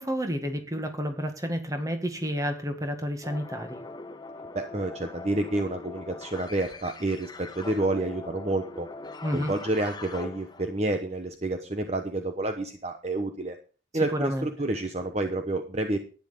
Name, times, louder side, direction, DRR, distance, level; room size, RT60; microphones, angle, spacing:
voice 1, 0.0-3.8 9.2-9.5 13.9-14.5, equal, 20° right, 6 dB, 1.9 m, -30 dB
sound 1, 3.2-10.9, left 3 dB, 25° left, 0.9 m, -42 dB
voice 2, 4.5-8.9 9.3-13.6 13.9-16.0, right 2 dB, 35° right, 6 dB, 1.0 m, -29 dB
11.5 x 10.0 x 5.1 m, 0.37 s
head